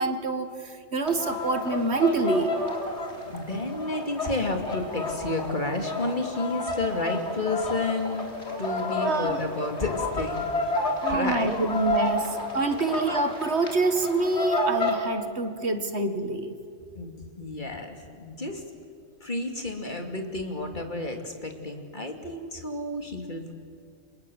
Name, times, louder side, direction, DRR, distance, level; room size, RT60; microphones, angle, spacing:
voice 1, 0.0-2.5 9.0-9.4 11.0-16.5, right 3 dB, 60° right, 8 dB, 2.0 m, -26 dB
sound 1, 1.1-15.0, left 2 dB, 65° left, 3.7 m, -31 dB
voice 2, 3.2-8.3 8.6-10.7 11.0-11.7 16.9-18.6 19.2-23.5, left 2 dB, 40° left, 4 dB, 2.8 m, -31 dB
29.5 x 26.0 x 7.2 m, 2.2 s
omnidirectional pair, 1.2 m